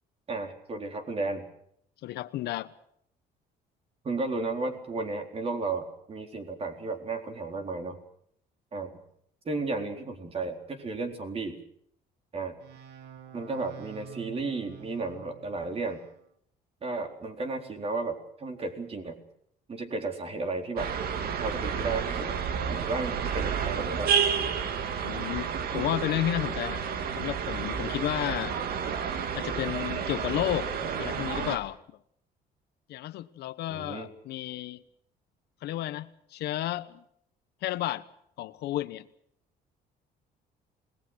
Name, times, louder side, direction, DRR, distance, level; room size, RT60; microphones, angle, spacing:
voice 1, 0.3-1.5 4.0-8.0 8.7-8.9 9.5-11.6 12.3-12.6 13.3-16.0 16.8-19.2 19.7-20.9 21.2-22.4 22.7-24.1 33.7-34.1, right 3 dB, 35° right, 5 dB, 4.2 m, -33 dB
voice 2, 2.0-2.7 25.0-26.8 27.2-28.6 29.3-30.7 31.0-31.8 32.9-34.8 35.6-37.0 37.6-38.0 38.4-39.1, left 14 dB, 75° left, 14 dB, 1.1 m, -32 dB
sound 1, 12.6-16.2, right 7 dB, 80° right, 2.6 m, -48 dB
sound 2, 20.8-31.6, right 7 dB, 65° right, 2.3 m, -30 dB
28.0 x 20.0 x 6.3 m, 0.69 s
cardioid pair, 110°, 17 cm